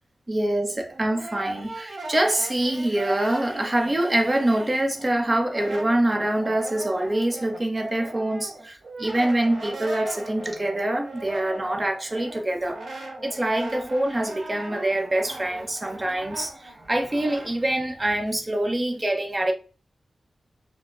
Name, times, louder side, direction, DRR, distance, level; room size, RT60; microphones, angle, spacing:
voice 1, 0.3-12.8 13.2-19.5, right 1 dB, 20° right, 0.7 m, -25 dB
Brass instrument, 0.7-5.1 5.4-17.5, right 2 dB, 70° right, 1.5 m, -38 dB
5.2 x 2.1 x 3.7 m
wide cardioid pair, 150°, 0 cm